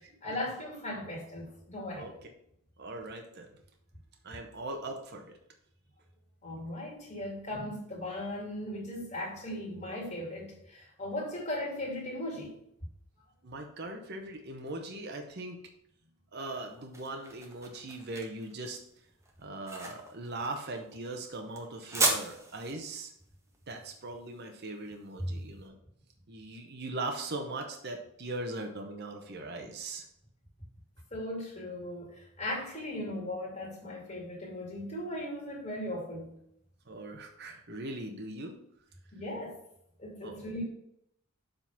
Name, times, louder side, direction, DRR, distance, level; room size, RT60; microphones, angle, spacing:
voice 1, 0.0-2.1 6.4-12.5 25.2-25.5 31.1-36.3 39.1-39.6 40.0-40.6, left 1 dB, 30° left, -3 dB, 2.5 m, -38 dB
voice 2, 2.0-2.3 2.8-3.5 4.2-5.3 6.7-6.8 13.4-15.6 16.3-18.8 19.4-23.1 23.7-25.8 26.3-30.0 36.9-38.6 40.2-40.4, right 2 dB, 45° right, 4 dB, 0.8 m, -40 dB
sound 1, 16.4-25.5, right 2 dB, 15° right, 0.9 m, -36 dB
7.3 x 3.8 x 5.9 m, 0.72 s
head